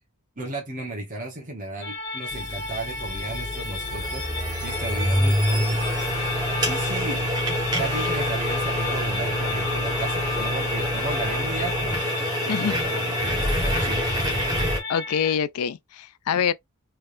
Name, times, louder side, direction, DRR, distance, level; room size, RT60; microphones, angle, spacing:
voice 1, 0.4-5.8 6.4-7.3 7.8-11.9 12.4-14.1, right 2 dB, 35° right, 1.1 m, -34 dB
sound 1, 1.8-15.3, left 3 dB, 50° left, 1.5 m, -34 dB
sound 2, 2.3-14.8, equal, 20° right, 1.3 m, -26 dB
sound 3, 5.7-12.2, left 6 dB, 15° left, 1.5 m, -37 dB
voice 2, 14.9-16.5, left 7 dB, 80° left, 0.4 m, -25 dB
3.3 x 3.2 x 2.6 m
head